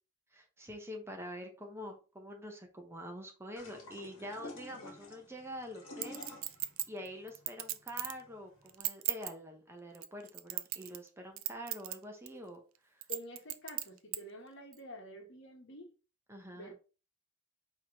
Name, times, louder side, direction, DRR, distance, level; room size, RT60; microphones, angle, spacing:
voice 1, 0.3-6.4 6.9-13.0 16.3-16.7, equal, 15° right, 0.8 m, -46 dB
sound 1, 3.6-8.8, left 2 dB, 90° left, 1.3 m, -50 dB
Chink clink, 6.0-8.2 8.7-9.3 9.9-11.1 11.4-11.9 12.3-12.4 13.0-14.2 14.7-14.8, right 14 dB, 80° right, 0.4 m, -36 dB
voice 2, 13.1-15.9 16.6-16.7, left 1 dB, 65° left, 1.2 m, -48 dB
4.7 x 3.0 x 3.5 m
head